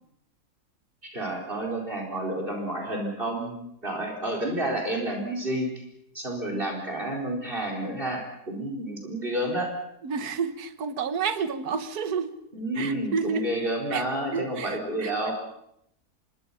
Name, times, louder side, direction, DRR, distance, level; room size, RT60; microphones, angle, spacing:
voice 1, 1.0-3.5 3.8-5.7 6.1-9.7 12.5-15.3, right 1 dB, 35° right, 2 dB, 4.5 m, -30 dB
voice 2, 10.0-12.3 12.7-13.5 13.9-14.1 14.3-15.1, right 6 dB, 75° right, 11 dB, 1.7 m, -30 dB
26.5 x 22.5 x 5.7 m, 0.75 s
omnidirectional pair, 1.7 m